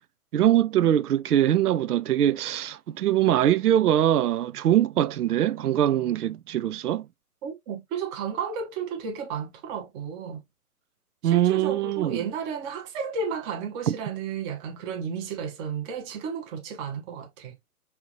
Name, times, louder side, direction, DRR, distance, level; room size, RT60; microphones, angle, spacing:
voice 1, 0.3-7.1 11.2-12.2 13.9-14.0, right 11 dB, 75° right, 0.6 m, -22 dB
voice 2, 7.4-10.4 11.2-17.5, right 6 dB, 20° right, 0.9 m, -33 dB
5.6 x 2.8 x 3.0 m
hypercardioid pair, 140°, 46 cm